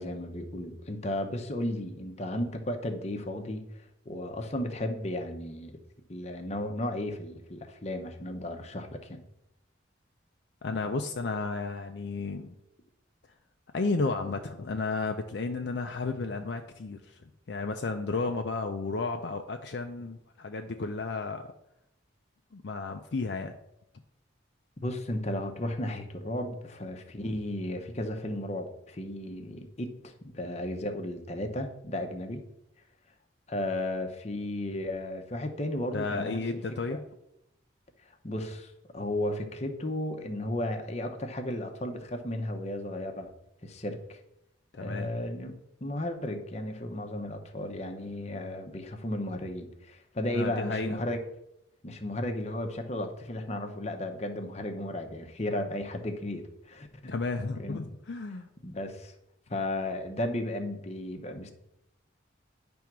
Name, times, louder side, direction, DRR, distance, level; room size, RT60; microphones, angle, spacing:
voice 1, 0.0-3.6 4.1-5.7 6.1-9.2 24.8-32.4 33.5-36.6 36.9-37.0 38.2-43.3 43.6-44.2 44.8-51.2 51.8-57.1 57.6-57.8 58.6-59.1 59.5-61.5, left 1 dB, 35° left, 5 dB, 0.8 m, -34 dB
voice 2, 10.6-12.5 13.7-21.5 22.5-23.6 35.9-37.0 44.7-45.1 50.3-51.0 57.1-58.5, left 3 dB, 60° left, 5 dB, 0.5 m, -33 dB
10.0 x 3.5 x 6.0 m, 0.83 s
head